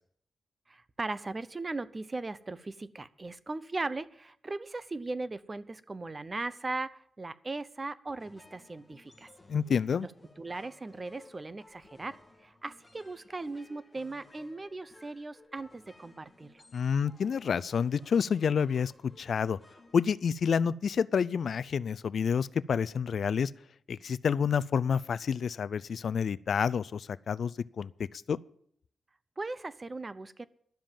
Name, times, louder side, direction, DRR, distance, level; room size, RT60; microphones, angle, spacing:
voice 1, 0.7-9.3 10.4-16.6 29.4-30.5, right 3 dB, 30° right, 15 dB, 0.7 m, -38 dB
sound 1, 8.1-20.8, left 2 dB, 15° left, 2.7 m, -58 dB
voice 2, 9.5-10.1 16.7-19.6 19.9-23.5 23.9-27.9 28.3-28.4, left 6 dB, 65° left, 19 dB, 0.4 m, -29 dB
11.5 x 7.5 x 9.1 m, 0.64 s
cardioid pair, 90°, 0 cm